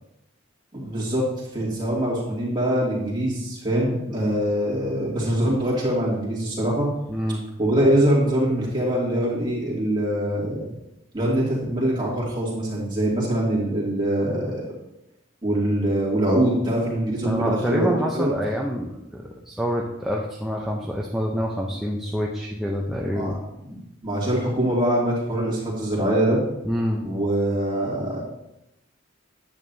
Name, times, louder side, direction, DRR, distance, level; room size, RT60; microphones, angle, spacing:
voice 1, 0.7-1.3 1.5-6.9 7.6-10.7 11.1-14.7 15.4-18.3 23.1-23.3 23.6-23.8 24.0-26.4 27.0-28.2, right 1 dB, 20° right, -5 dB, 2.5 m, -23 dB
voice 2, 7.1-7.4 17.2-23.4 26.6-27.1, equal, ahead, -3 dB, 0.6 m, -27 dB
9.6 x 8.7 x 2.7 m, 0.87 s
head